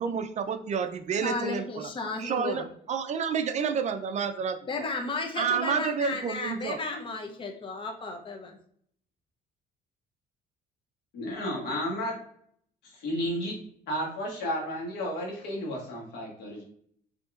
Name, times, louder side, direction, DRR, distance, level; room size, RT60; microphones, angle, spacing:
voice 1, 0.0-1.9 2.2-4.6 5.4-6.8, right 6 dB, 45° right, 9 dB, 0.4 m, -29 dB
voice 2, 1.2-2.7 4.7-8.6, left 3 dB, 30° left, 3 dB, 0.7 m, -34 dB
voice 3, 11.1-12.2 12.8-13.5 13.9-16.6, equal, 80° left, -1 dB, 1.5 m, -32 dB
5.0 x 2.8 x 2.4 m, 0.64 s
cardioid pair, 110°, 17 cm